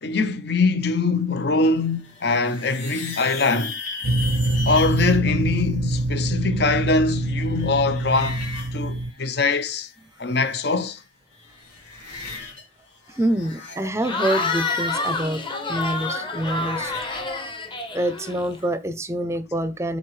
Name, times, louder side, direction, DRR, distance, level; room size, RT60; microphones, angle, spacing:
voice 1, 0.0-3.8 4.7-8.4 8.7-9.9 10.2-11.0, left 3 dB, 60° left, 0.7 m, -22 dB
sound 1, 1.8-5.2 6.6-9.9 10.2-11.0 11.3-12.6 12.9-17.3, left 4 dB, 85° left, 2.7 m, -38 dB
sound 2, 4.0-9.1, right 1 dB, 80° right, 0.5 m, -25 dB
voice 2, 13.1-16.9 17.9-20.0, right 1 dB, 15° right, 0.6 m, -26 dB
Cheering / Crowd, 14.0-18.6, left 3 dB, 25° left, 1.1 m, -28 dB
7.5 x 4.0 x 3.2 m
head